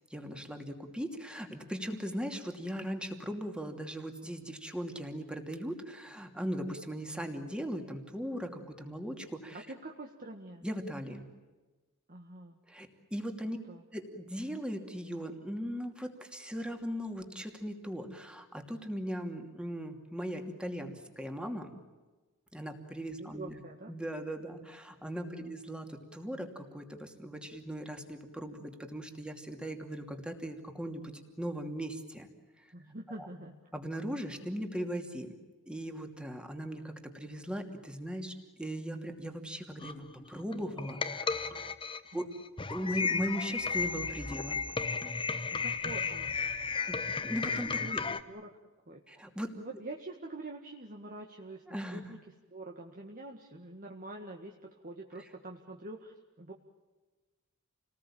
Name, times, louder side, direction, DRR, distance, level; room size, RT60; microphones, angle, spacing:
voice 1, 0.1-9.7 10.6-11.3 12.7-13.6 13.9-21.7 22.5-23.6 23.9-31.1 31.4-32.3 32.6-32.7 33.2-33.3 33.7-35.3 35.7-41.6 42.1-42.2 42.7-44.6 46.9-48.0 49.1-49.6 51.7-52.1 55.2-55.3, equal, 5° right, 5 dB, 2.7 m, -39 dB
voice 2, 9.7-10.7 12.1-12.6 13.4-13.8 23.2-23.9 25.3-25.5 32.7-33.6 42.1-42.3 45.5-46.4 47.8-48.5 48.9-49.2 49.6-51.6 51.9-52.2 52.5-56.5, right 2 dB, 40° right, 2 dB, 1.8 m, -46 dB
sound 1, 39.8-48.2, left 4 dB, 25° left, 1.1 m, -34 dB
29.0 x 19.5 x 8.8 m, 1.2 s
head